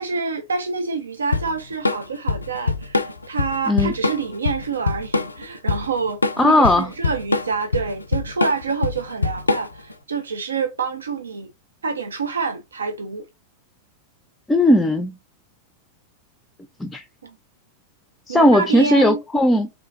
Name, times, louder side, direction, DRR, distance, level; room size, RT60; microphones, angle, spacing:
voice 1, 0.0-11.5 11.8-13.3 17.2-17.4 18.3-19.2, right 5 dB, 70° right, 0.4 m, -27 dB
Drum kit / Drum, 1.3-9.9, left 3 dB, 80° left, 0.4 m, -23 dB
voice 2, 6.4-6.9 14.5-15.1 16.8-17.0 18.3-19.7, left 1 dB, 10° left, 0.4 m, -17 dB
3.6 x 3.4 x 2.6 m
figure-of-eight pair, 90°, 0 cm